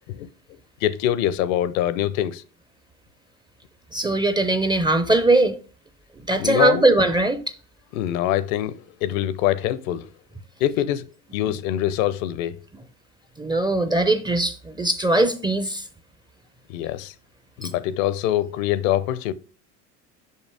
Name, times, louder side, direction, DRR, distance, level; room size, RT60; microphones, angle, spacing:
voice 1, 0.8-2.4 6.4-6.8 7.9-10.1 10.6-11.1 11.3-12.6 16.7-17.1 17.6-19.3, left 12 dB, 55° left, 0.7 m, -24 dB
voice 2, 3.9-5.6 6.2-7.4 13.4-15.9 17.6-17.7, right 2 dB, 10° right, 0.5 m, -20 dB
6.6 x 5.6 x 3.3 m
hypercardioid pair, 75°, 48 cm